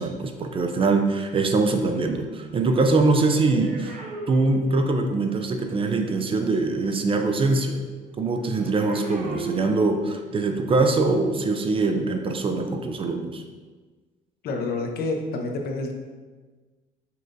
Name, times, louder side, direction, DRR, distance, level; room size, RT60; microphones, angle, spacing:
voice 1, 0.0-4.0 4.3-7.8 8.2-13.4, right 3 dB, 30° right, 5 dB, 0.5 m, -23 dB
sound 1, 2.5-5.3 8.4-10.4 11.2-11.4, right 2 dB, 50° right, 0.9 m, -38 dB
voice 2, 14.4-15.9, left 3 dB, 65° left, 2 dB, 0.7 m, -28 dB
5.5 x 2.5 x 3.9 m, 1.4 s
cardioid pair, 110°, 17 cm